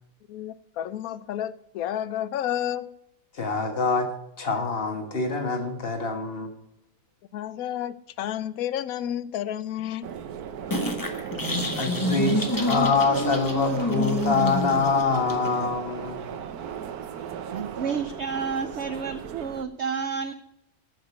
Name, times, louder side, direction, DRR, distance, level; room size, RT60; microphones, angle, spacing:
voice 1, 0.3-2.9 7.3-10.1, left 11 dB, 75° left, 1.1 m, -31 dB
voice 2, 3.3-4.1 4.4-6.5 11.8-16.2, left 4 dB, 40° left, 1.7 m, -25 dB
sound 1, 10.0-19.6, right 8 dB, 90° right, 1.3 m, -36 dB
sound 2, 10.7-15.7, left 1 dB, 15° left, 1.0 m, -28 dB
voice 3, 17.5-20.3, right 6 dB, 60° right, 0.8 m, -30 dB
9.4 x 6.5 x 8.2 m
omnidirectional pair, 1.5 m